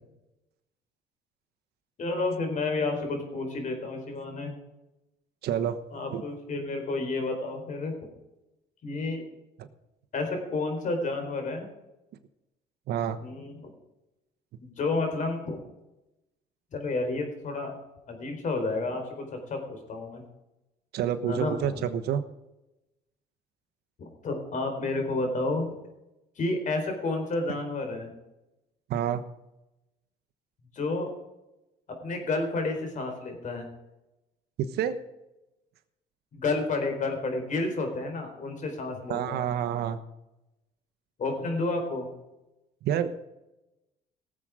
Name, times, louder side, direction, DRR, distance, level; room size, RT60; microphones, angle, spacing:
voice 1, 2.0-4.5 5.9-7.9 8.8-9.2 10.1-11.7 13.2-13.7 14.6-15.6 16.7-17.8 18.1-20.2 21.3-21.9 24.2-25.7 26.4-28.1 30.7-31.1 32.0-33.7 36.3-39.4 41.2-42.1, left 3 dB, 50° left, 5 dB, 4.1 m, -30 dB
voice 2, 5.4-5.8 6.1-6.2 9.6-9.7 12.9-13.2 20.9-22.2 27.5-27.6 28.9-29.2 34.6-34.9 39.1-40.0 42.8-43.1, right 9 dB, 75° right, 10 dB, 1.1 m, -28 dB
18.0 x 7.6 x 4.9 m, 0.96 s
cardioid pair, 110°, 17 cm